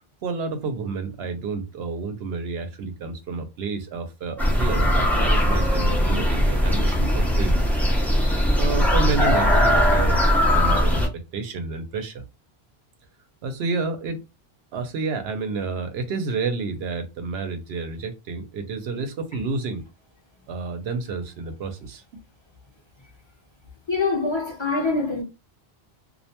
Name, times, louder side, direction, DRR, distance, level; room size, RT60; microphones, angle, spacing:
voice 1, 0.2-7.6 8.6-10.2 10.5-11.0 11.3-12.2 13.4-14.2 14.7-19.8 20.5-22.2, right 4 dB, 85° right, 0.8 m, -30 dB
sound 1, 4.4-11.1, equal, ahead, 0.4 m, -20 dB
voice 2, 23.9-25.2, left 3 dB, 30° left, 0.7 m, -24 dB
2.5 x 2.1 x 2.8 m
omnidirectional pair, 1.0 m